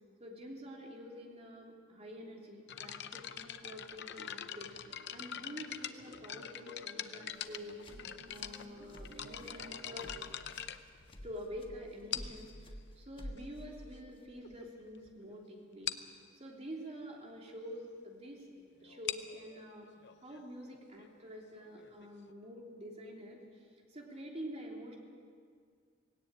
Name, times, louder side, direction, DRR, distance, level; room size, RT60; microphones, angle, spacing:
voice 1, 0.2-7.8 8.3-10.1 11.2-15.9 16.4-18.4 18.8-19.9 20.2-23.4 23.9-25.0, equal, 30° right, -1 dB, 3.1 m, -47 dB
sound 1, 2.7-11.5 12.1-12.5 13.4-13.5 14.1-14.2 14.4-14.7 15.0-15.1 15.3-15.4 15.9-16.2 18.8-22.3, left 10 dB, 55° left, 0.7 m, -44 dB
sound 2, 4.9-10.4, right 2 dB, 50° right, 1.9 m, -58 dB
sound 3, 7.3-14.3, equal, 25° left, 1.4 m, -51 dB
18.0 x 17.0 x 8.7 m, 2.2 s
head